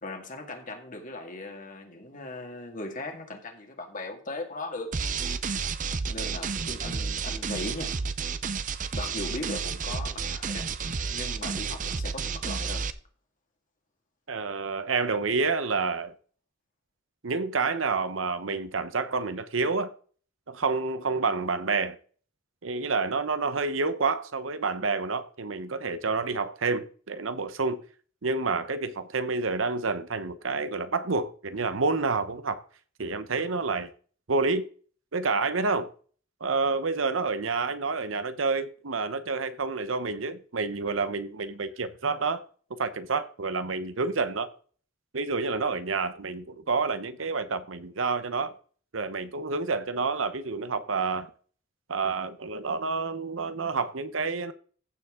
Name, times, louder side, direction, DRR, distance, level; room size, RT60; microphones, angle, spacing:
voice 1, 0.0-4.9 6.1-8.0 8.9-10.7 11.1-12.8, left 2 dB, 40° left, 2.1 m, -38 dB
sound 1, 4.9-12.9, right 5 dB, 40° right, 0.6 m, -31 dB
voice 2, 14.3-16.1 17.2-19.9 20.5-22.0 22.6-27.8 28.2-32.6 33.0-33.9 34.3-34.7 35.1-35.9 36.4-42.4 42.8-44.5 45.1-48.5 48.9-51.3 51.9-54.5, right 4 dB, 85° right, 0.9 m, -28 dB
15.0 x 7.0 x 3.7 m
head